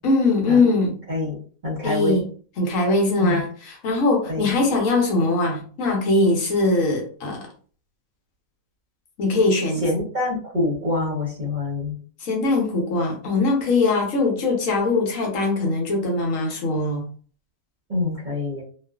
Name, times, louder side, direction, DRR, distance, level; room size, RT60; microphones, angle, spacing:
voice 1, 0.0-1.0 1.8-2.3 2.6-7.5 9.2-9.8 12.2-17.0, left 2 dB, 70° left, 0 dB, 1.0 m, -21 dB
voice 2, 1.6-2.2 3.2-3.4 4.2-4.5 9.8-12.0 17.9-18.6, left 2 dB, 40° right, -5 dB, 0.9 m, -25 dB
2.4 x 2.4 x 2.3 m, 0.43 s
omnidirectional pair, 1.5 m